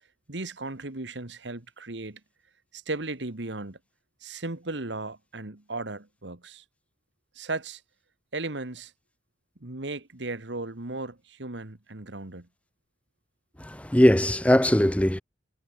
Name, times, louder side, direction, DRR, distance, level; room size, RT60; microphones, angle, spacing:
voice 1, 0.3-2.2 2.7-3.8 4.2-6.6 7.4-7.8 8.3-8.9 9.6-12.5, right 2 dB, 65° right, 1.9 m, -36 dB
voice 2, 13.6-15.2, equal, 5° left, 0.8 m, -20 dB
head